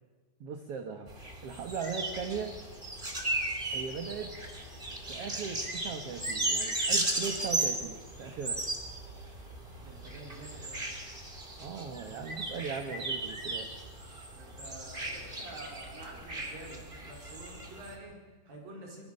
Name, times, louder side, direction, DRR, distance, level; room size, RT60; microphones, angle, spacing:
voice 1, 0.4-1.1 1.4-2.5 3.7-4.3 5.1-8.6 11.6-13.8, right 6 dB, 55° right, 5 dB, 1.9 m, -38 dB
sound 1, 1.1-17.9, right 2 dB, 15° right, 2.5 m, -36 dB
voice 2, 9.8-10.9 14.3-19.0, right 2 dB, 90° right, 0 dB, 6.5 m, -48 dB
23.5 x 22.0 x 6.6 m, 1.4 s
omnidirectional pair, 3.9 m